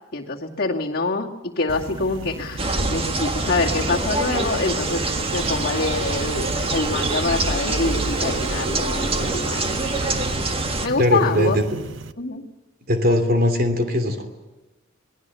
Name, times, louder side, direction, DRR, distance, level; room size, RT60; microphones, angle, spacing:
voice 1, 0.1-9.7 10.8-11.6 12.2-12.4, left 3 dB, 50° left, -1 dB, 2.4 m, -25 dB
sound 1, 1.7-12.1, right 3 dB, 70° right, 1.0 m, -35 dB
sound 2, 2.6-10.9, right 2 dB, 30° right, 1.7 m, -25 dB
voice 2, 11.0-11.6 12.9-14.3, left 1 dB, 45° right, 7 dB, 3.0 m, -20 dB
27.0 x 19.5 x 7.0 m, 1.1 s
head